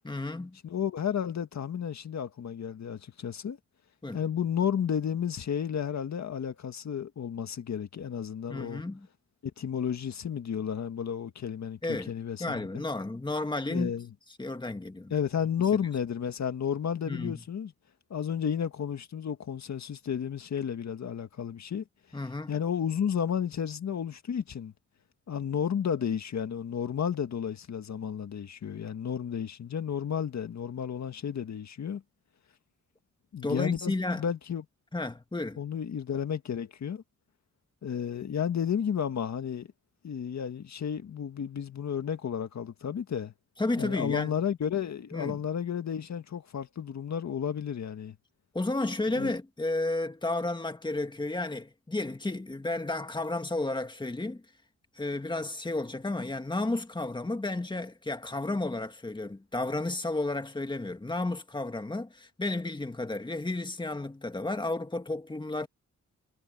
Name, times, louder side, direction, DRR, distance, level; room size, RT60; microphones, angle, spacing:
voice 1, 0.0-0.6 4.0-4.2 8.5-9.1 11.8-12.1 12.4-13.9 14.4-15.1 17.1-17.4 22.1-22.6 33.4-34.2 34.9-35.6 43.6-44.3 45.1-45.4 48.5-54.4 55.0-65.7, left 2 dB, 15° left, 2.1 m, -32 dB
voice 2, 0.6-3.6 4.1-8.8 9.4-12.6 13.7-14.1 15.1-17.7 18.1-21.8 22.5-24.7 25.3-32.0 33.3-34.6 35.6-37.0 37.8-39.7 40.0-43.3 43.8-48.2 49.1-49.3, left 8 dB, 65° left, 1.8 m, -32 dB
wide cardioid pair, 105°, 30 cm